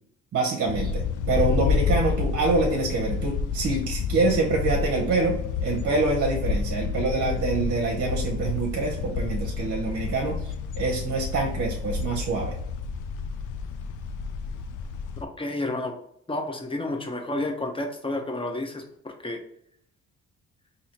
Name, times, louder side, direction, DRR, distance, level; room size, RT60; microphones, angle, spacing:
voice 1, 0.3-12.5, right 3 dB, 50° right, 1 dB, 0.8 m, -26 dB
sound 1, 0.6-15.2, left 5 dB, 80° left, 0.5 m, -29 dB
voice 2, 15.2-15.9 16.3-19.4, left 2 dB, 20° left, 3 dB, 0.7 m, -31 dB
4.1 x 2.7 x 2.9 m, 0.69 s
cardioid pair, 90°, 30 cm